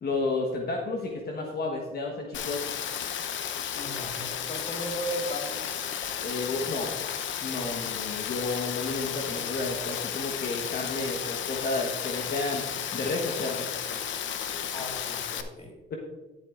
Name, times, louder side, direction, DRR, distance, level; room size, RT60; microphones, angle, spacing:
voice 1, 0.0-2.7 6.2-6.9 7.4-12.6 12.9-13.7, left 3 dB, 50° left, 0 dB, 1.2 m, -31 dB
Rain, 2.3-15.4, left 9 dB, 70° left, 0.7 m, -33 dB
voice 2, 3.7-5.6 14.7-15.8, equal, 30° left, 1 dB, 2.0 m, -36 dB
12.0 x 7.8 x 2.5 m, 1.3 s
cardioid pair, 90°, 20 cm